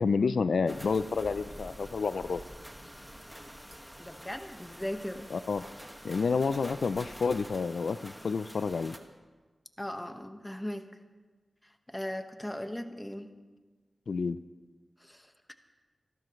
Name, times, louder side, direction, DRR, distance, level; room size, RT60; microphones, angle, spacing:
voice 1, 0.0-2.4 5.3-5.6 6.0-8.9 14.1-14.4, left 5 dB, 80° left, 13 dB, 0.4 m, -29 dB
sound 1, 0.7-9.0, equal, 5° right, 1.7 m, -47 dB
voice 2, 4.0-5.3 9.8-10.9 11.9-13.3 15.0-15.3, left 1 dB, 10° left, 7 dB, 1.4 m, -38 dB
27.0 x 12.5 x 3.2 m, 1.3 s
cardioid pair, 45°, 0 cm